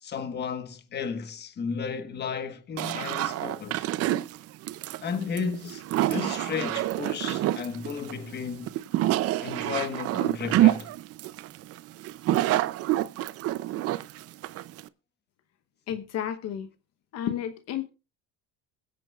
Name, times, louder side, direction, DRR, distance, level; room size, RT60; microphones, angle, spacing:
voice 1, 0.0-3.9 5.0-5.8 6.1-8.7 9.4-10.9, left 6 dB, 35° left, 1.3 m, -33 dB
sound 1, 2.8-14.9, right 14 dB, 55° right, 0.6 m, -27 dB
voice 2, 15.9-16.7 17.1-17.9, left 10 dB, 60° left, 1.0 m, -32 dB
22.0 x 9.0 x 2.4 m
cardioid pair, 135°, 29 cm